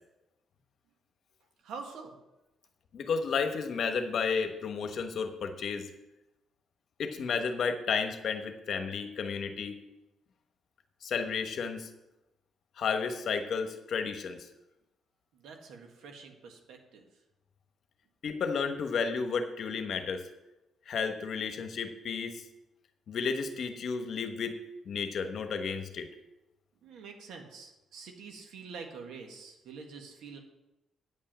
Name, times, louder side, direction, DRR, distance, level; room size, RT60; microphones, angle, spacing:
voice 1, 1.6-2.2 15.3-17.1 26.8-30.4, right 5 dB, 80° right, 3 dB, 1.8 m, -46 dB
voice 2, 2.9-5.9 7.0-9.7 11.0-11.9 12.8-14.5 18.2-20.2 20.9-22.4 23.1-24.6 24.8-26.1, left 5 dB, 60° left, 7 dB, 1.1 m, -32 dB
9.5 x 5.5 x 7.6 m, 0.95 s
cardioid pair, 90°, 0 cm